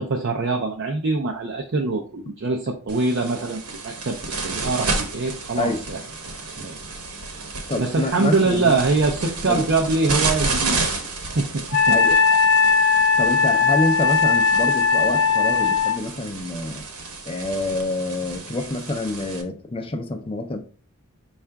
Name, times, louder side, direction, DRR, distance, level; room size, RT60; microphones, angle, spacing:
voice 1, 0.0-3.6 3.8-6.0 6.6-6.8 7.8-10.9 11.3-12.2, right 3 dB, 55° right, 1 dB, 0.5 m, -23 dB
sound 1, 2.9-19.4, right 3 dB, 80° right, 1.0 m, -31 dB
voice 2, 7.7-8.7 9.5-9.7 11.9-12.2 13.2-16.9 17.3-20.6, left 2 dB, 25° left, 6 dB, 0.5 m, -27 dB
Wind instrument woodwind instrument, 11.7-16.0, left 5 dB, 90° left, 0.5 m, -18 dB
5.5 x 2.4 x 3.4 m, 0.40 s
head